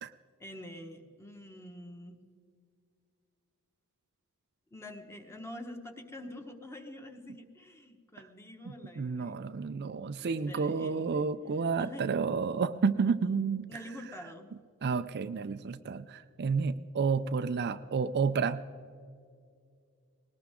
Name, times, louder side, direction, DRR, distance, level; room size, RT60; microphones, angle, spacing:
voice 1, 0.4-2.2 4.7-9.5 10.2-11.3 11.8-12.2 13.7-14.5, left 1 dB, 10° left, 5 dB, 1.2 m, -46 dB
voice 2, 8.7-13.8 14.8-18.6, right 5 dB, 50° right, 11 dB, 0.4 m, -30 dB
20.0 x 18.5 x 3.6 m, 2.2 s
head